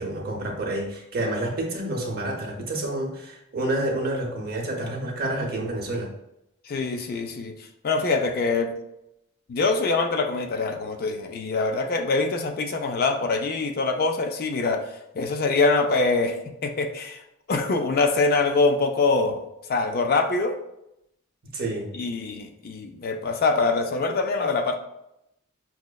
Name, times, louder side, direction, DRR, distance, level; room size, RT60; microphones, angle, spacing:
voice 1, 0.0-6.1 21.5-21.9, right 1 dB, 45° right, 0 dB, 0.7 m, -29 dB
voice 2, 6.7-7.6 7.8-8.7 9.5-16.4 16.6-17.2 17.5-19.4 19.7-20.6 21.9-24.8, left 3 dB, 45° left, 4 dB, 0.3 m, -24 dB
5.8 x 2.0 x 2.2 m, 0.83 s
head